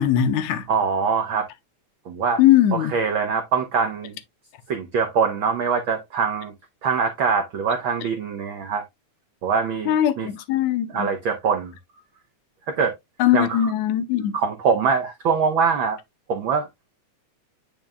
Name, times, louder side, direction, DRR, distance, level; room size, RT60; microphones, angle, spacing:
voice 1, 0.0-0.7 2.4-2.9 9.9-11.1 13.2-14.4, left 11 dB, 80° left, 2.0 m, -20 dB
voice 2, 0.7-1.5 2.1-2.4 2.7-4.2 4.7-6.5 6.8-8.8 9.4-10.3 10.9-11.7 12.8-12.9 13.3-13.7 14.3-16.0 16.3-16.7, right 5 dB, 85° right, 1.1 m, -23 dB
9.1 x 5.1 x 2.2 m
omnidirectional pair, 3.4 m